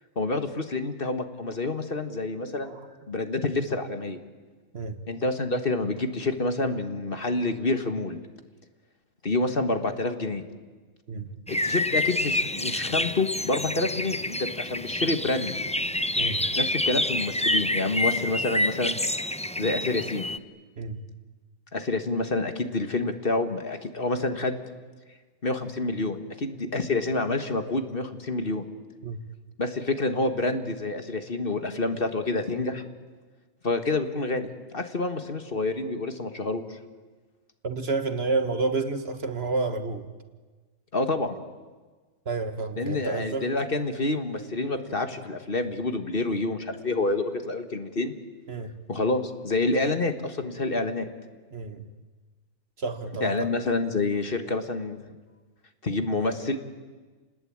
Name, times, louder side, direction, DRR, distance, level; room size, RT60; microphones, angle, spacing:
voice 1, 0.2-2.7 3.1-4.2 5.1-8.2 9.2-10.4 11.5-15.6 16.6-19.0 19.6-20.3 21.7-24.6 25.4-28.7 29.6-32.8 33.6-36.8 40.9-41.4 42.8-48.1 48.9-51.1 53.2-55.0 55.8-56.6, left 2 dB, 45° left, 7 dB, 1.8 m, -28 dB
sound 1, 11.5-20.4, left 1 dB, 10° left, 0.4 m, -28 dB
voice 2, 37.6-40.1 42.2-43.5 48.5-48.8 51.5-51.9 52.8-53.5, right 3 dB, 50° right, 9 dB, 1.6 m, -30 dB
29.5 x 20.0 x 8.8 m, 1.4 s
omnidirectional pair, 1.4 m